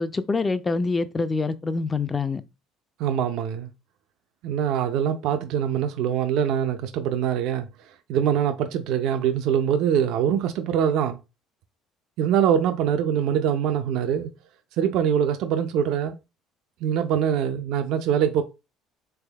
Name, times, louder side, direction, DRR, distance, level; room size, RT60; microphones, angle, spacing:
voice 1, 0.0-2.4, left 3 dB, 20° left, 0.4 m, -25 dB
voice 2, 3.0-3.7 4.4-7.7 8.1-11.2 12.2-14.3 14.8-16.2 16.8-18.4, right 9 dB, 70° right, 0.4 m, -23 dB
3.5 x 3.4 x 2.2 m
supercardioid pair, 95°, 0 cm